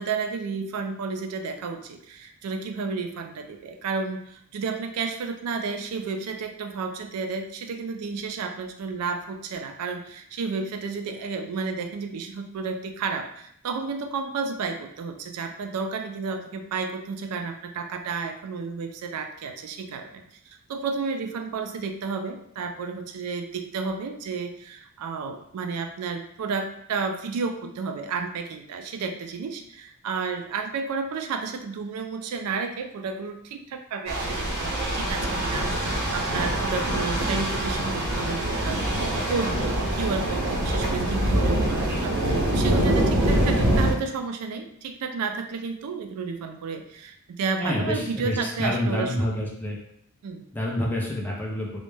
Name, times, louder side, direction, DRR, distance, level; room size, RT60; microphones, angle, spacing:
voice 1, 0.0-39.0 39.3-49.4 50.2-50.5, right 4 dB, 90° right, 5 dB, 0.3 m, -32 dB
sound 1, 34.1-43.9, right 1 dB, 50° right, 0.7 m, -24 dB
voice 2, 47.6-49.8 50.5-51.8, left 1 dB, 10° left, -3 dB, 0.5 m, -28 dB
2.2 x 2.0 x 3.1 m, 0.70 s
head